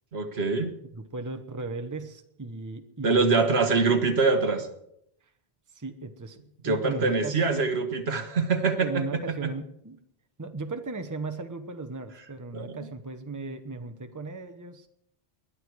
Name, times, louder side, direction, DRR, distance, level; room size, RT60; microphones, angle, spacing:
voice 1, 0.1-0.7 3.0-4.7 6.6-9.0 9.4-9.5 12.5-12.8, right 4 dB, 75° right, 7 dB, 1.6 m, -24 dB
voice 2, 0.9-3.7 5.7-7.6 8.8-10.0 10.4-14.9, right 3 dB, 20° right, 8 dB, 0.9 m, -36 dB
20.5 x 11.5 x 4.7 m, 0.74 s
omnidirectional pair, 1.1 m